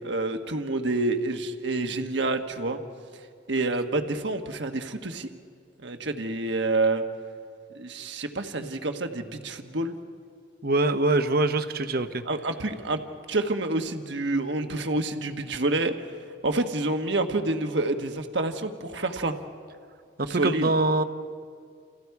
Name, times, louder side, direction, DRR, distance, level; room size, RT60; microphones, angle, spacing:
voice 1, 0.0-2.8 3.5-5.3 5.8-7.0 7.7-9.9 12.2-13.0 13.3-15.9 16.4-19.3 20.2-20.7, right 2 dB, 65° right, 6 dB, 1.3 m, -28 dB
voice 2, 10.6-12.2 20.2-21.0, right 2 dB, 50° right, 9 dB, 1.0 m, -24 dB
29.5 x 28.5 x 4.7 m, 2.1 s
head